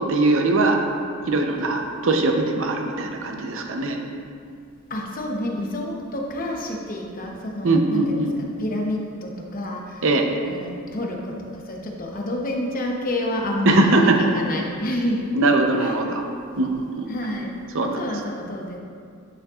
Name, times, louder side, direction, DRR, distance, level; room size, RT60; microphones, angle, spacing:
voice 1, 0.1-0.8 1.2-4.0 7.6-8.3 10.0-10.3 13.7-14.3 15.3-16.2 16.6-17.1 17.7-18.0, right 2 dB, 60° right, 3 dB, 0.7 m, -21 dB
voice 2, 4.9-10.1 10.4-15.2 15.8-16.0 17.1-17.6 17.8-18.8, left 1 dB, 40° left, 0 dB, 0.8 m, -29 dB
9.4 x 6.5 x 2.4 m, 2.2 s
head